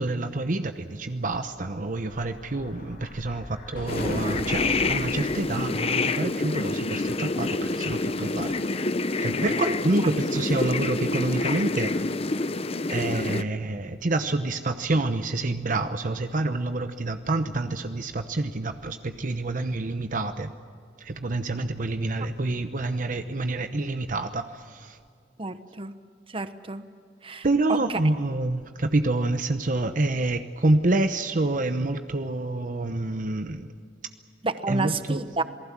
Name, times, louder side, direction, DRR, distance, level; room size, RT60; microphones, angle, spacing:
voice 1, 0.0-8.5 9.2-12.2 12.9-20.5 21.0-25.0 27.4-33.7 34.7-35.2, right 2 dB, 50° right, 8 dB, 0.9 m, -27 dB
Explosion, 1.4-6.0, left 1 dB, 55° left, 2.1 m, -40 dB
sound 1, 3.9-13.4, left 3 dB, 35° left, 0.7 m, -27 dB
voice 2, 25.4-25.9 26.3-26.8 27.2-27.8 34.4-35.4, right 3 dB, 30° right, 11 dB, 1.1 m, -30 dB
27.5 x 19.5 x 7.5 m, 2.2 s
head